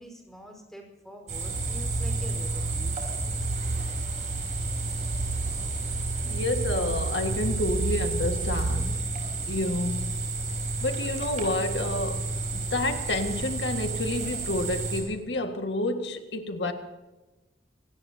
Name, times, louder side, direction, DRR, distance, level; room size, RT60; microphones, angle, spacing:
voice 1, 0.0-3.2, equal, ahead, 1 dB, 4.7 m, -45 dB
sound 1, 1.3-15.0, right 3 dB, 40° right, 5.9 m, -31 dB
sound 2, 1.4-9.0, right 3 dB, 75° right, 0.8 m, -33 dB
voice 2, 6.2-9.1 9.5-10.2 10.8-16.7, left 2 dB, 65° left, 6 dB, 1.8 m, -29 dB
26.0 x 18.5 x 2.8 m, 1.1 s
head